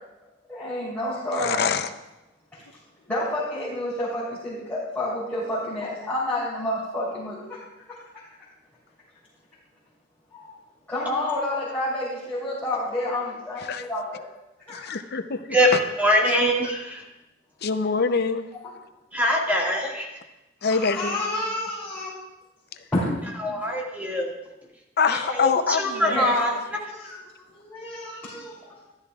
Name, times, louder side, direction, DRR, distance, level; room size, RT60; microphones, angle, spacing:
voice 1, 0.5-1.6 2.5-2.6 3.1-7.6 7.9-8.0 10.3-10.5 10.9-14.3 14.7-15.0 20.6-22.1 22.9-23.0 25.1-25.2 26.1-26.3 26.9-27.2 27.5-28.9, left 1 dB, 10° left, -11 dB, 3.3 m, -29 dB
voice 2, 1.4-1.9 13.7-13.8 14.7-15.4 17.6-18.5 20.6-21.2 25.0-26.2, left 5 dB, 55° left, 10 dB, 0.6 m, -24 dB
voice 3, 15.5-17.0 19.1-20.1 23.4-24.3 25.2-26.8, equal, 10° right, -2 dB, 1.9 m, -23 dB
14.0 x 12.5 x 2.4 m, 0.99 s
head